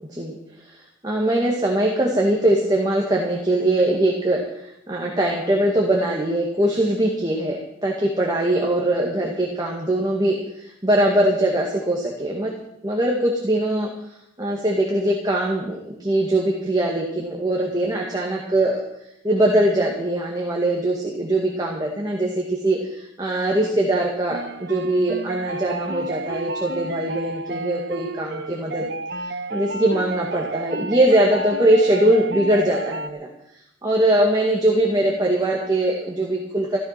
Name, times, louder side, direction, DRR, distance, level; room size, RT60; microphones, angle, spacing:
voice 1, 1.0-12.5 12.8-13.9 14.4-18.8 19.2-28.9 29.2-33.3 33.8-36.8, right 1 dB, 20° right, -2 dB, 2.1 m, -21 dB
sound 1, 24.3-33.1, right 2 dB, 65° right, 0.7 m, -31 dB
14.5 x 12.5 x 5.9 m, 0.79 s
head